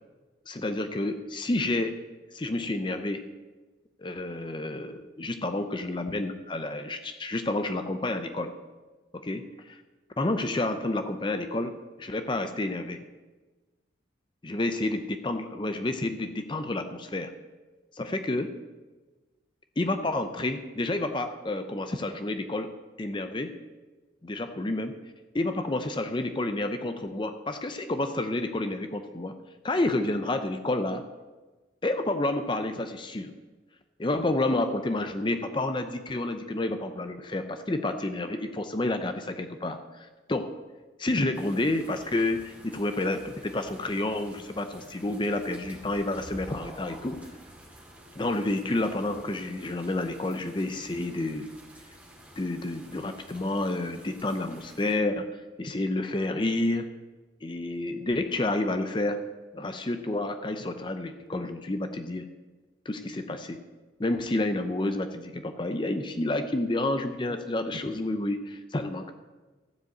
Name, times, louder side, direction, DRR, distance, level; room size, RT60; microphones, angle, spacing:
voice 1, 0.5-2.0 2.3-3.2 4.0-8.5 9.1-9.8 10.2-13.0 14.4-17.3 17.9-18.5 19.8-22.7 23.0-23.6 24.2-25.0 25.3-29.3 29.6-31.0 31.8-33.3 34.0-40.5 41.0-47.2 48.2-51.5 52.4-56.9 57.4-59.2 59.5-62.3 62.9-63.6 64.0-69.1, left 2 dB, 25° left, 8 dB, 0.6 m, -30 dB
sound 1, 41.3-54.9, equal, 10° right, 1.9 m, -50 dB
15.0 x 5.1 x 7.9 m, 1.3 s
head